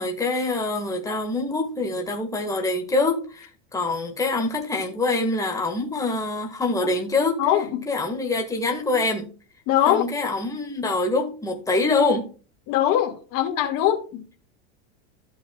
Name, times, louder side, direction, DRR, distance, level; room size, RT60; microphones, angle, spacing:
voice 1, 0.0-7.4 7.9-9.3 9.8-12.3, left 3 dB, 10° left, 1.8 m, -25 dB
voice 2, 9.7-10.0 12.7-14.4, left 11 dB, 55° left, 2.2 m, -22 dB
13.5 x 6.2 x 2.4 m
supercardioid pair, 120°, 40 cm